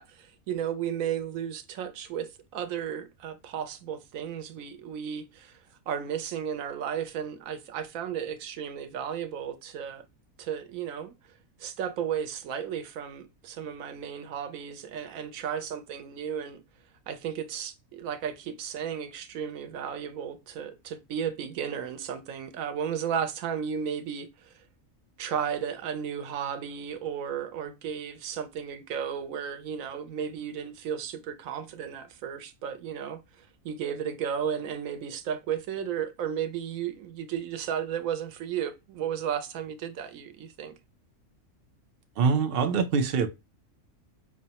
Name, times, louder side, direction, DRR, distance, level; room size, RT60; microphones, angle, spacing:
voice 1, 0.0-10.0 10.4-11.1 11.6-16.6 17.1-24.6 25.2-40.8, right 8 dB, 90° right, 1.1 m, -34 dB
voice 2, 42.2-43.3, right 5 dB, 55° right, 0.7 m, -24 dB
5.4 x 2.1 x 2.8 m
omnidirectional pair, 1.4 m